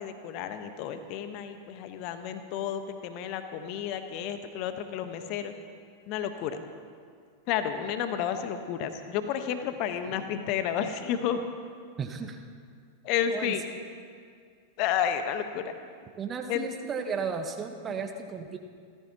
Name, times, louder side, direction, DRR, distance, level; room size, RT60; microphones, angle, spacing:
voice 1, 0.0-5.5 6.1-6.6 7.5-11.4 13.0-13.6 14.8-15.7 16.5-16.6, left 9 dB, 45° left, 9 dB, 1.2 m, -31 dB
voice 2, 12.0-12.4 13.3-13.6 16.2-18.6, right 5 dB, 25° right, 5 dB, 1.2 m, -34 dB
28.5 x 15.0 x 3.0 m, 2.2 s
figure-of-eight pair, 90°, 0 cm